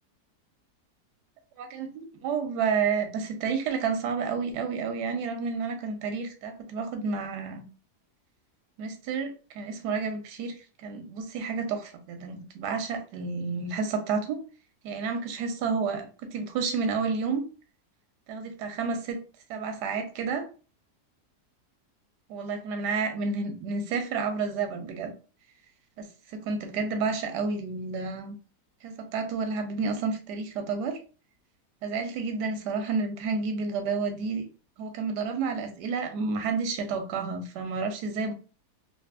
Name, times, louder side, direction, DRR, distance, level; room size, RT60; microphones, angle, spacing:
voice 1, 1.6-7.6 8.8-10.5 10.8-14.4 14.8-17.4 18.3-19.2 19.5-20.5 22.3-25.1 26.0-28.3 28.8-31.0 31.8-34.4 34.8-38.3, right 5 dB, 90° right, 6 dB, 1.2 m, -30 dB
3.3 x 2.5 x 2.3 m, 0.36 s
omnidirectional pair, 1.7 m